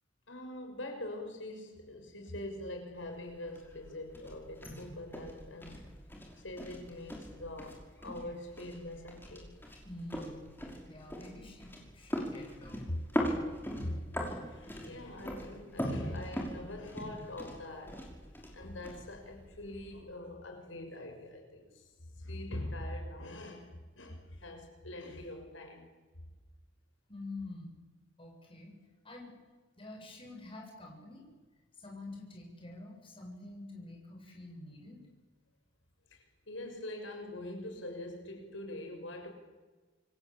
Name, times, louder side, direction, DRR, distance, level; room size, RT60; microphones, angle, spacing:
voice 1, 0.3-5.8 6.4-9.5 12.9-13.0 13.8-14.0 14.3-18.1 18.5-21.9 22.2-23.7 24.0-25.9 36.1-39.3, left 1 dB, 85° left, 6.1 m, -43 dB
sound 1, 3.0-20.0, equal, 10° left, 5.7 m, -41 dB
voice 2, 9.8-10.5 10.9-12.9 27.1-27.8 28.2-28.7 29.0-29.4 29.8-31.3 31.8-35.0, left 2 dB, 30° left, 7.4 m, -47 dB
27.5 x 23.5 x 8.6 m
head